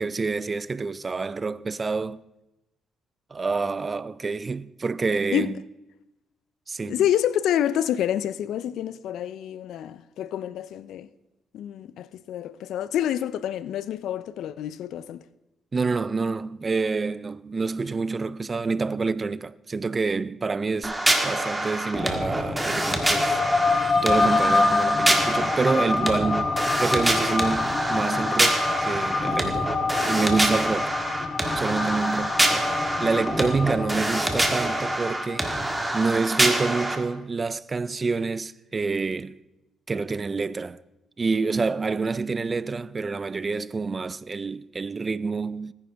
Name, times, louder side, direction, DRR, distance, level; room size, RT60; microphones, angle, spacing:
voice 1, 0.0-2.2 3.3-5.6 6.7-7.0 15.7-23.4 24.0-26.5 26.8-29.8 30.0-30.9 31.5-39.4 39.9-40.8 41.2-45.7, right 4 dB, 30° right, 0.4 m, -27 dB
voice 2, 6.9-11.1 11.5-15.2 24.2-24.4, left 11 dB, 80° left, 0.4 m, -28 dB
sound 1, 20.8-37.0, right 1 dB, 10° right, 1.6 m, -26 dB
sound 2, 22.0-35.9, left 3 dB, 30° left, 0.9 m, -27 dB
18.5 x 10.0 x 3.4 m
cardioid pair, 90°, 0 cm